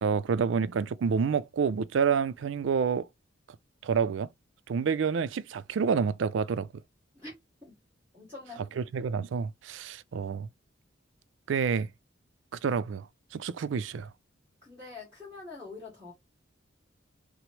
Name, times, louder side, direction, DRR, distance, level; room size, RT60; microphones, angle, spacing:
voice 1, 0.0-3.1 3.8-4.3 4.7-6.7 8.8-10.5 11.5-11.9 12.6-13.1 13.3-14.1, right 6 dB, 70° right, 0.4 m, -28 dB
voice 2, 7.1-7.8 8.1-8.8 14.6-16.1, left 3 dB, 15° right, 2.1 m, -45 dB
6.0 x 2.0 x 3.1 m
head